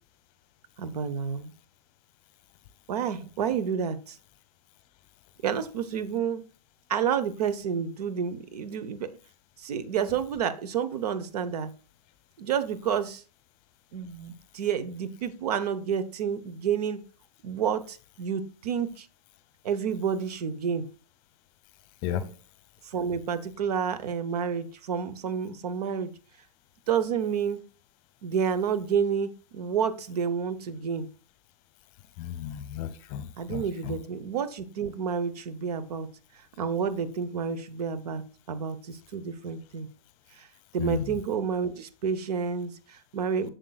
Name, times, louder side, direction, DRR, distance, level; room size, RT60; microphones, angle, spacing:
voice 1, 0.8-1.5 2.9-4.2 5.4-6.4 6.9-9.1 9.6-11.7 12.4-13.2 13.9-17.0 17.4-19.1 19.6-20.9 22.8-26.1 26.9-27.6 28.2-31.1 33.4-36.1 36.6-38.2 38.5-39.9 40.4-40.5 40.7-43.5, right 7 dB, 70° right, 13 dB, 0.9 m, -29 dB
voice 2, 32.2-33.9 40.8-41.1, left 10 dB, 40° left, 12 dB, 0.8 m, -33 dB
7.4 x 6.8 x 2.3 m, 0.37 s
hypercardioid pair, 135°, 21 cm